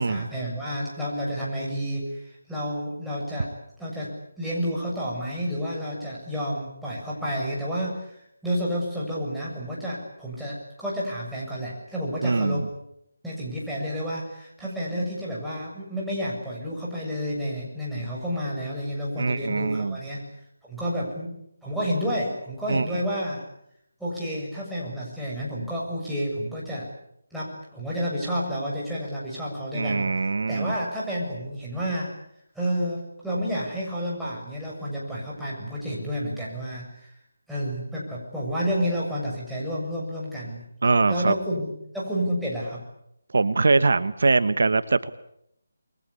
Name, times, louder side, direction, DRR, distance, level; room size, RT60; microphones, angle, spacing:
voice 1, 0.0-3.5 3.8-4.1 4.4-12.6 13.2-20.2 20.6-21.3 21.6-23.4 24.0-26.9 27.3-32.1 32.5-37.1 37.5-40.7 41.1-42.8, equal, ahead, -7 dB, 7.2 m, -30 dB
voice 2, 12.2-12.7 19.2-20.0 22.7-22.8 29.7-30.7 40.8-41.3 43.3-45.1, right 3 dB, 65° right, 12 dB, 1.3 m, -22 dB
28.5 x 22.5 x 8.5 m, 0.77 s
figure-of-eight pair, 165°, 0 cm